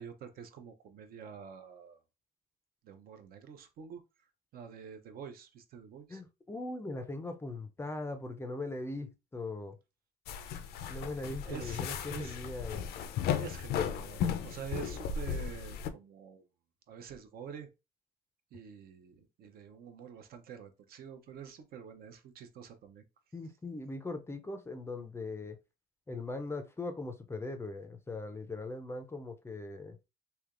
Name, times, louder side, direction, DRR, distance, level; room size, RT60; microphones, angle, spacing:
voice 1, 0.0-2.0 2.8-4.0 4.5-6.2 10.8-11.8 12.1-12.4 13.4-16.4 16.9-17.7 18.5-23.0, right 7 dB, 60° right, 0.6 m, -47 dB
voice 2, 6.1-9.1 9.3-9.8 10.9-12.9 23.3-25.6 26.1-30.0, left 2 dB, 15° left, 0.4 m, -40 dB
sound 1, 10.3-15.9, left 8 dB, 70° left, 0.4 m, -35 dB
3.3 x 2.8 x 2.4 m
cardioid pair, 110°, 17 cm